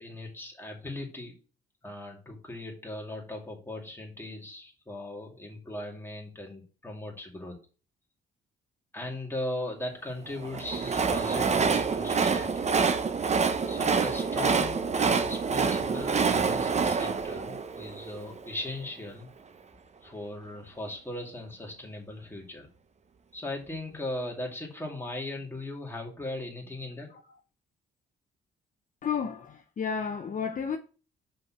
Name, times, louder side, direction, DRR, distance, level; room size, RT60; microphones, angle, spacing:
voice 1, 0.0-1.4 1.8-7.6 8.9-12.7 13.7-19.3 20.0-22.7 23.3-27.1, left 1 dB, 10° left, 2.4 m, -38 dB
Train, 10.4-18.5, right 5 dB, 35° right, 0.8 m, -27 dB
voice 2, 29.0-30.8, left 6 dB, 40° left, 0.8 m, -31 dB
5.2 x 4.4 x 5.9 m
cardioid pair, 90°, 20 cm